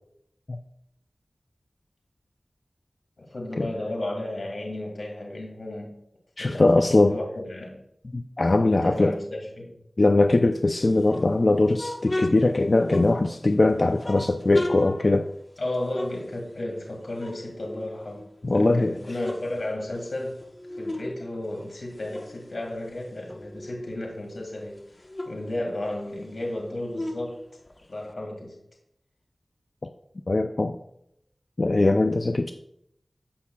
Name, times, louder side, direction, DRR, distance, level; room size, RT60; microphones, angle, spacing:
voice 1, 3.2-6.0 6.4-7.8 8.7-9.8 15.6-20.4 20.7-27.4 27.9-28.6, left 1 dB, 85° left, -1 dB, 2.0 m, -33 dB
voice 2, 6.4-7.1 8.1-9.1 10.0-15.3 18.4-19.0 30.3-30.8 31.6-32.5, left 2 dB, 55° left, 6 dB, 0.5 m, -21 dB
sound 1, 10.9-13.5 14.0-16.9 17.1-18.5 18.9-21.1 21.4-24.0 24.4-24.5 24.7-28.1, left 1 dB, 40° left, 1.0 m, -37 dB
16.0 x 5.8 x 2.3 m, 0.75 s
wide cardioid pair, 50°, 0 cm